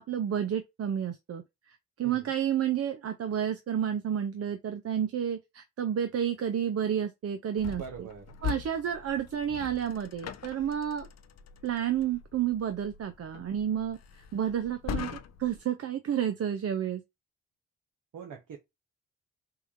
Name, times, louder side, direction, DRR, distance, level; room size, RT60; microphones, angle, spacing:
voice 1, 0.0-1.4 2.0-7.8 8.4-11.1 11.6-14.0 14.3-17.0, right 9 dB, 45° right, 0.6 m, -30 dB
voice 2, 2.0-2.3 7.8-8.4 18.1-18.6, right 7 dB, 65° right, 1.1 m, -43 dB
sound 1, 7.6-15.6, left 8 dB, 50° left, 0.6 m, -41 dB
5.6 x 2.4 x 2.5 m
hypercardioid pair, 40°, 34 cm